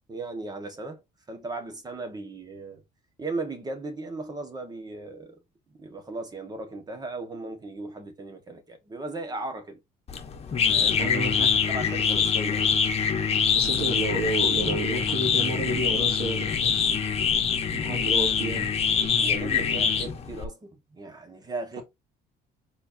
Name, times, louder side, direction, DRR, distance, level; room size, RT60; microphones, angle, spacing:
voice 1, 0.1-1.0 1.3-2.8 3.2-5.4 5.8-9.8 10.7-11.1 11.4-12.7 19.2-21.8, right 2 dB, 25° right, 1.3 m, -37 dB
sound 1, 10.1-20.5, left 7 dB, 40° left, 1.1 m, -24 dB
voice 2, 11.0-11.5 13.5-16.8 17.7-18.7, right 3 dB, 65° right, 2.3 m, -31 dB
4.4 x 4.2 x 2.6 m
cardioid pair, 110°, 17 cm